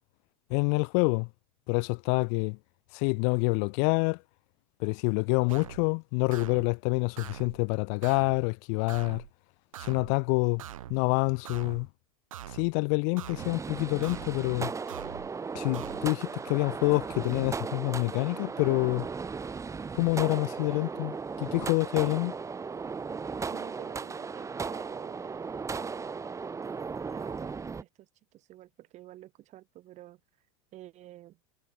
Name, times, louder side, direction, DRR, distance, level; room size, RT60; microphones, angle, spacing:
voice 1, 0.5-1.3 1.7-2.6 2.9-4.2 4.8-9.2 9.8-10.6 10.9-11.9 12.5-14.7 15.5-19.1 19.9-22.3, left 40 dB or more, 60° left, 0.7 m, -27 dB
sound 1, 5.5-5.9 6.3-6.7 7.2-7.6 8.0-8.4 8.9-9.3 9.7-10.2 10.6-11.0 11.4-11.9 12.3-12.7 13.2-13.6 14.0-14.4 14.9-15.3 15.7-16.0, right 12 dB, 90° right, 1.9 m, -43 dB
sound 2, 13.4-27.8, right 5 dB, 20° right, 5.4 m, -36 dB
voice 2, 23.5-25.7 26.7-30.2 30.7-31.4, right 14 dB, 45° right, 7.2 m, -50 dB
supercardioid pair, 110°, 17 cm